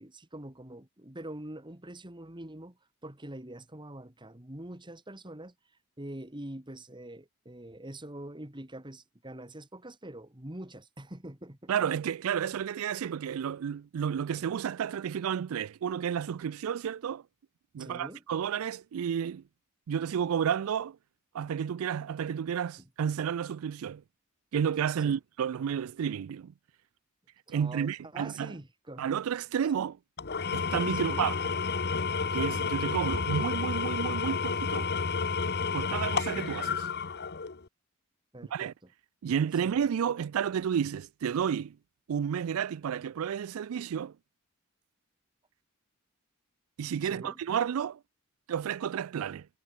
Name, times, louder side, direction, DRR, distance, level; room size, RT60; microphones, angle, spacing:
voice 1, 0.0-5.5 6.0-11.7 14.4-14.5 17.8-18.2 22.8-22.9 25.0-25.2 27.5-29.1 30.9-31.3 38.3-38.7 39.6-39.8 47.0-47.4, right 1 dB, 20° right, 2.1 m, -44 dB
voice 2, 11.7-17.2 17.7-19.4 19.9-21.0 21.3-24.0 24.5-26.5 27.5-28.5 29.0-30.0 30.5-31.5 32.3-34.9 35.7-36.9 38.5-38.7 39.2-41.8 42.1-44.2 46.8-48.0 48.5-49.5, right 8 dB, 80° right, 0.4 m, -31 dB
Engine / Tools, 30.2-37.6, left 5 dB, 50° left, 1.0 m, -31 dB
head